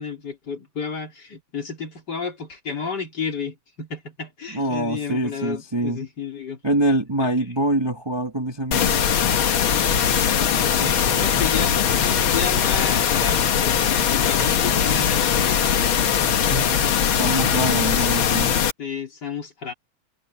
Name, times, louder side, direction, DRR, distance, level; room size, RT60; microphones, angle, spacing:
voice 1, 0.0-6.6 10.6-15.6 18.8-19.7, left 6 dB, 30° left, 3.0 m, -32 dB
voice 2, 4.5-6.0 6.6-9.0 10.8-11.1 16.5-18.5, right 1 dB, 15° right, 0.8 m, -25 dB
sound 1, 8.7-18.7, left 8 dB, 55° left, 1.5 m, -20 dB
omnidirectional pair, 3.9 m